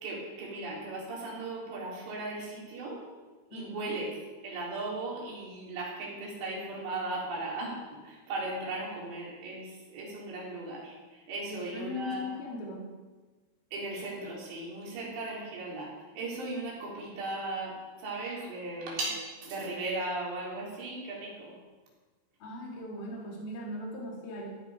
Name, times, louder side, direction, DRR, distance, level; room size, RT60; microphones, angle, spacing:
voice 1, 0.0-3.0 3.5-4.1 4.4-12.4 13.7-21.5, right 2 dB, 85° right, -4 dB, 5.9 m, -37 dB
voice 2, 3.5-3.9 11.5-12.9 22.4-24.5, left 2 dB, 60° left, -2 dB, 4.6 m, -39 dB
15.0 x 14.0 x 5.0 m, 1.3 s
omnidirectional pair, 4.9 m